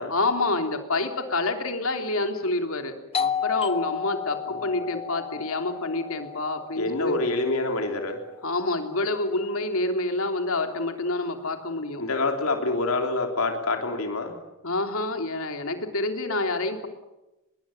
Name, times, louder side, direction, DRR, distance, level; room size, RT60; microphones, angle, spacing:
voice 1, 0.1-7.2 8.4-12.0 14.6-16.9, left 2 dB, 70° left, 5 dB, 3.3 m, -28 dB
Doorbell, 3.1-8.5, left 7 dB, 25° left, 0.8 m, -33 dB
voice 2, 6.8-8.2 12.0-14.3, left 2 dB, 85° left, 4 dB, 3.4 m, -26 dB
25.0 x 21.5 x 9.0 m, 0.99 s
head